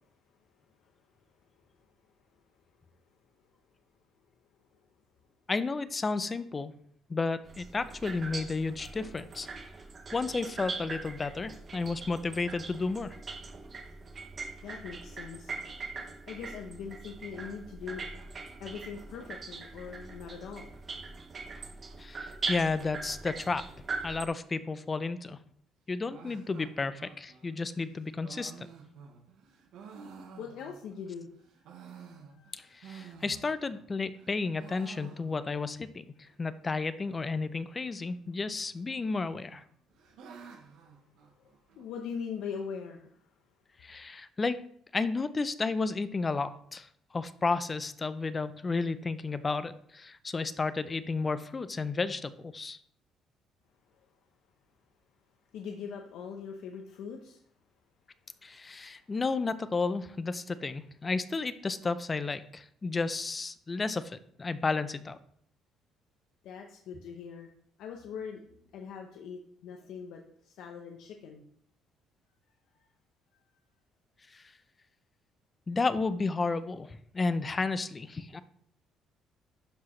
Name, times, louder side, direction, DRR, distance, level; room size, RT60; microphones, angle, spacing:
voice 1, 5.5-6.7 7.1-9.5 10.1-13.2 22.0-23.6 24.0-25.4 25.9-28.7 32.5-39.6 43.8-44.6 44.9-52.8 58.4-65.2 74.3-74.4 75.7-78.4, left 4 dB, 20° left, 13 dB, 0.4 m, -32 dB
sound 1, 7.5-24.3, right 4 dB, 30° right, 0.7 m, -41 dB
voice 2, 14.6-15.5 16.3-18.1 18.6-21.0 30.4-31.3 31.9-32.0 32.3-33.0 41.8-43.1 55.5-57.4 66.4-67.5 67.8-68.4 68.7-71.4, left 6 dB, 70° left, 2 dB, 0.7 m, -41 dB
sound 2, 26.1-31.1 31.5-33.9 34.1-35.7 36.0-36.1 36.3-36.4 37.0-37.4 38.5-39.1 39.4-41.9, right 6 dB, 65° right, 0.9 m, -51 dB
11.5 x 4.8 x 3.1 m, 0.67 s
cardioid pair, 160°, 0 cm